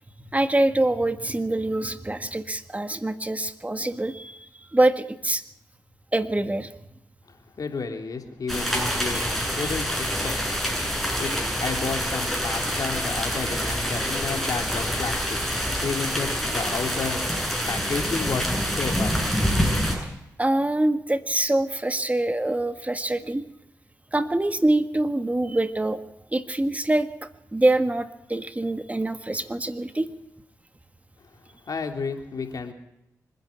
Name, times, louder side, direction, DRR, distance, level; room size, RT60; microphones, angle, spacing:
voice 1, 0.3-4.4 4.7-5.4 6.1-6.7 9.1-9.2 20.4-23.4 24.1-26.0 26.3-30.0, right 1 dB, 20° right, 9 dB, 1.6 m, -24 dB
voice 2, 7.6-9.2 9.5-10.4 11.2-15.4 15.8-17.2 17.7-19.1 31.7-32.7, left 4 dB, 65° left, 5 dB, 3.1 m, -31 dB
sound 1, 8.5-20.0, equal, 5° left, 7.9 m, -26 dB
25.5 x 10.5 x 9.8 m, 0.86 s
cardioid pair, 50°, 7 cm